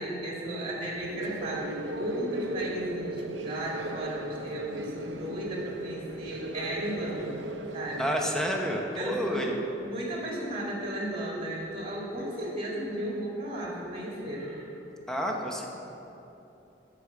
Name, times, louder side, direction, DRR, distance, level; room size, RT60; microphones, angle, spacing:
voice 1, 0.0-8.1 9.0-14.7, right 1 dB, 30° right, -4 dB, 2.6 m, -35 dB
sound 1, 0.9-8.8, right 2 dB, 80° right, 0.6 m, -37 dB
voice 2, 8.0-9.5 15.1-15.7, equal, 5° left, 0 dB, 0.9 m, -29 dB
14.5 x 4.9 x 6.0 m, 3.0 s
head